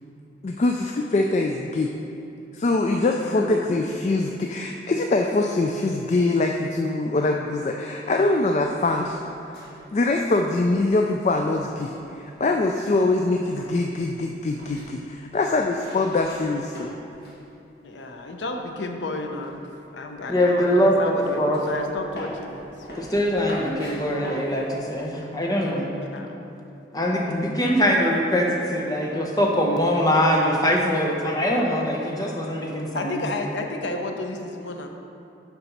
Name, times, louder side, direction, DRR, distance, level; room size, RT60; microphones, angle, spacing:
voice 1, 0.4-1.9 2.5-9.2 9.9-16.9 27.3-27.6, left 2 dB, 40° left, 2 dB, 0.3 m, -23 dB
voice 2, 3.2-3.5 17.8-19.6 19.9-22.7 26.0-26.4 32.9-34.9, left 2 dB, 90° left, 4 dB, 0.7 m, -32 dB
sound 1, 8.5-17.4 17.7-18.6 18.9-25.0, equal, 65° left, 2.0 m, -43 dB
voice 3, 20.3-21.6 23.0-25.9 26.9-33.2, equal, 20° left, -2 dB, 0.8 m, -22 dB
6.9 x 5.3 x 5.8 m, 2.7 s
head